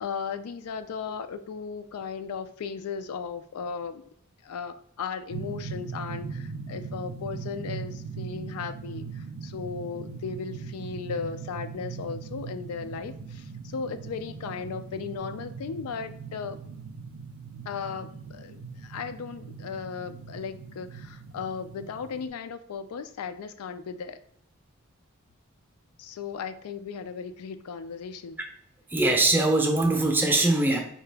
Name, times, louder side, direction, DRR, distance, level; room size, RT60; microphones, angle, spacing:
voice 1, 0.0-4.0 4.4-16.6 17.7-24.2 26.0-28.4, left 6 dB, 90° left, 11 dB, 0.4 m, -36 dB
sound 1, 5.3-22.3, right 5 dB, 75° right, 0.5 m, -40 dB
voice 2, 28.9-30.8, right 2 dB, 10° right, 3 dB, 0.6 m, -22 dB
4.7 x 2.9 x 3.4 m, 0.69 s
head